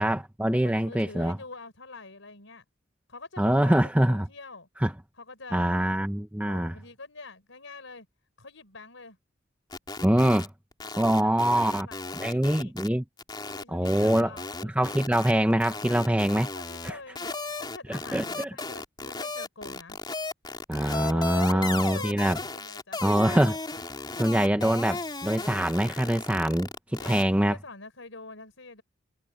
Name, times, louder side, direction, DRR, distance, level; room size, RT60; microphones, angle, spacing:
voice 1, 0.0-1.4 3.4-4.3 4.8-4.9 5.5-6.7 10.0-10.5 11.0-11.9 12.1-13.0 13.7-14.3 14.6-16.5 16.8-17.0 17.9-18.5 20.7-22.4 23.0-23.6 24.2-26.7 27.0-27.6, right 1 dB, 5° right, 0.9 m, -24 dB
voice 2, 0.6-2.6 3.1-4.7 5.2-5.8 6.4-8.1 8.4-9.2 10.8-12.7 13.5-15.4 16.5-20.0 21.0-22.2 22.5-23.0 24.6-24.7 27.0-28.8, left 3 dB, 75° left, 4.7 m, -46 dB
sound 1, 9.7-10.5 10.7-12.9 13.2-16.9 17.2-27.2, left 3 dB, 20° left, 3.3 m, -35 dB
head